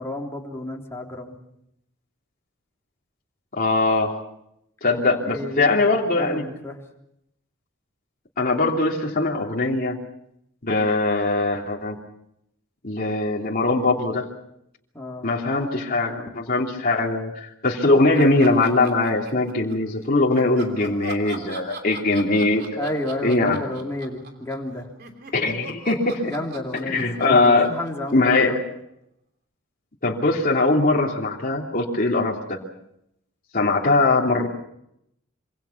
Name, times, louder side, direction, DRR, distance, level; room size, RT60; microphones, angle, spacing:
voice 1, 0.0-1.4 4.9-5.8 6.2-6.8 14.9-15.3 22.8-24.9 26.3-28.8, left 1 dB, 15° left, 0 dB, 3.6 m, -31 dB
voice 2, 3.5-4.1 4.8-6.4 8.4-10.0 10.6-12.0 12.8-14.3 15.2-22.9 23.2-23.6 25.3-26.3 26.8-27.7 28.1-28.6 30.0-32.6 33.5-34.5, left 2 dB, 45° left, -1 dB, 3.0 m, -21 dB
Laughter, 18.1-19.9 20.3-24.7 25.0-28.6, right 3 dB, 55° right, 3.2 m, -40 dB
26.0 x 25.5 x 5.8 m, 0.78 s
head